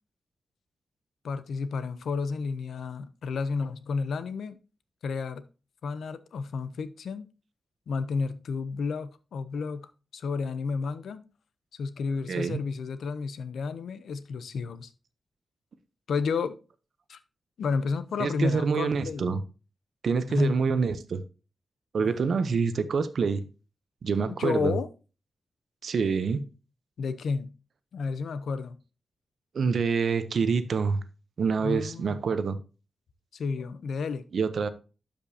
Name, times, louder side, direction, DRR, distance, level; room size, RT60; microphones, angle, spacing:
voice 1, 1.2-4.6 5.0-5.5 5.8-7.3 7.9-9.9 10.1-11.2 11.7-14.9 16.1-16.6 17.1-17.2 17.6-19.4 20.3-20.6 22.0-22.1 24.3-24.9 27.0-27.5 27.9-28.8 31.6-32.2 33.3-34.3, left 5 dB, 80° left, 0.7 m, -31 dB
voice 2, 12.3-12.6 18.2-19.4 20.0-21.2 21.9-23.4 24.0-24.7 25.8-26.4 29.5-31.0 31.4-32.6 34.3-34.7, right 5 dB, 60° right, 0.7 m, -26 dB
12.0 x 5.2 x 2.8 m
wide cardioid pair, 150°, 0 cm